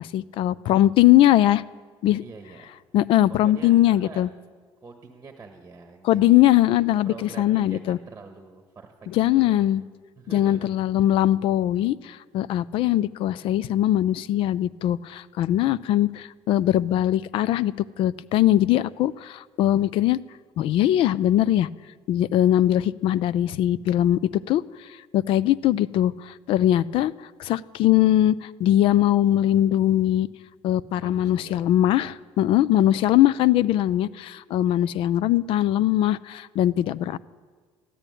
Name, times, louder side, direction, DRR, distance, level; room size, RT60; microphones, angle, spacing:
voice 1, 0.0-1.6 2.0-2.2 2.9-4.3 6.0-8.0 9.1-9.8 10.3-20.2 20.6-21.7 22.1-24.2 24.5-24.6 25.1-27.1 27.4-30.3 30.6-37.2, left 13 dB, 60° left, 20 dB, 0.4 m, -21 dB
voice 2, 2.2-2.7 3.4-4.2 4.8-6.5 7.0-9.7 10.2-10.7 30.9-31.7 32.8-33.1, right 4 dB, 15° right, 4 dB, 1.3 m, -45 dB
13.5 x 10.5 x 9.2 m, 1.5 s
cardioid pair, 150°, 10 cm